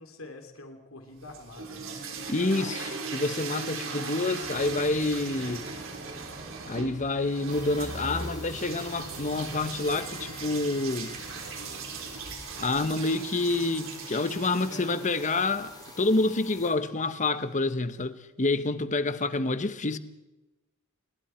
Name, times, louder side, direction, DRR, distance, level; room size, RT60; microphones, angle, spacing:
voice 1, 0.0-2.2 14.7-14.9, left 2 dB, 80° left, 3.0 m, -46 dB
sound 1, 1.1-17.2, right 4 dB, 65° right, 4.1 m, -39 dB
voice 2, 2.3-5.7 6.7-11.1 12.6-20.0, left 2 dB, 35° left, 1.1 m, -28 dB
sound 2, 4.4-13.0, equal, 15° right, 3.1 m, -46 dB
sound 3, 7.5-16.7, left 4 dB, 20° left, 2.7 m, -50 dB
28.5 x 21.0 x 4.5 m
head